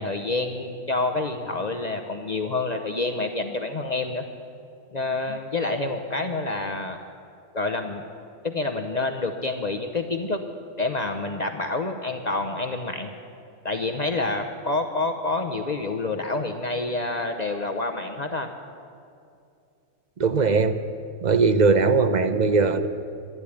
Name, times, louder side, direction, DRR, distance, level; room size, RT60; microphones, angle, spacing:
voice 1, 0.0-4.2 4.9-7.0 7.5-8.0 8.4-10.4 10.8-13.1 13.6-18.5, left 3 dB, 35° left, 5 dB, 0.9 m, -28 dB
voice 2, 20.2-20.8 21.2-22.9, right 4 dB, 40° right, 9 dB, 0.7 m, -20 dB
12.0 x 12.0 x 9.7 m, 2.4 s
omnidirectional pair, 1.4 m